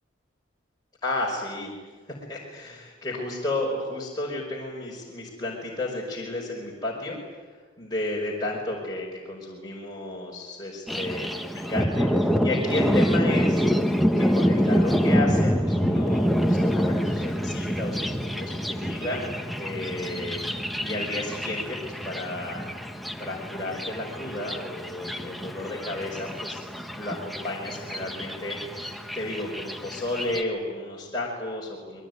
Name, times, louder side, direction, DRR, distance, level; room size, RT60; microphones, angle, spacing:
voice 1, 1.0-1.8 2.3-7.2 7.8-11.3 11.7-13.6 14.2-19.3 19.6-20.4 20.8-22.7 23.2-26.6 26.9-32.0, left 2 dB, 20° left, -3 dB, 5.4 m, -32 dB
Thunder, 10.9-30.4, equal, ahead, 1.2 m, -26 dB
27.5 x 22.0 x 9.6 m, 1.4 s
head